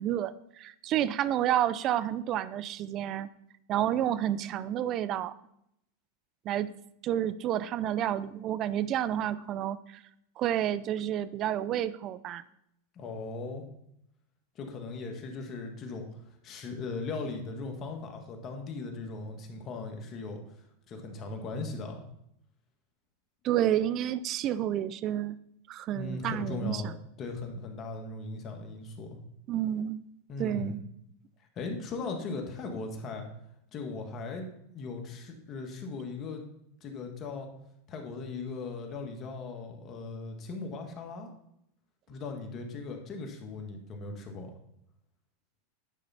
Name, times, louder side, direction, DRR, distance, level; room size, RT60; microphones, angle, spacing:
voice 1, 0.0-3.3 3.7-5.3 6.4-6.7 7.0-10.0 10.4-12.4 23.4-25.4 25.7-26.9 29.5-30.0 30.4-30.8, right 11 dB, 40° right, 16 dB, 0.5 m, -30 dB
voice 2, 12.9-13.6 14.5-16.0 16.4-20.4 20.9-22.0 25.9-29.2 30.3-30.8 31.5-33.2 33.7-34.5 34.7-36.4 36.8-37.5 37.9-41.3 42.1-44.5, left 3 dB, 35° left, 3 dB, 1.7 m, -38 dB
10.0 x 5.0 x 5.6 m, 0.75 s
supercardioid pair, 120°, 0 cm